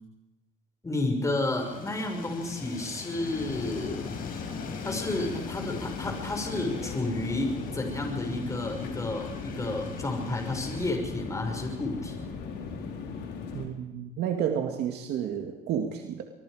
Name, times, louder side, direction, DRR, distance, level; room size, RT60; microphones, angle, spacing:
voice 1, 0.8-4.1 4.8-12.3, left 2 dB, 20° left, 3 dB, 5.8 m, -31 dB
sound 1, 1.6-10.9, left 6 dB, 60° left, 6.0 m, -43 dB
sound 2, 3.2-13.7, left 5 dB, 75° left, 4.6 m, -38 dB
voice 2, 13.5-16.2, right 8 dB, 80° right, 3 dB, 2.3 m, -31 dB
25.0 x 22.0 x 5.1 m, 1.0 s
cardioid pair, 110°, 17 cm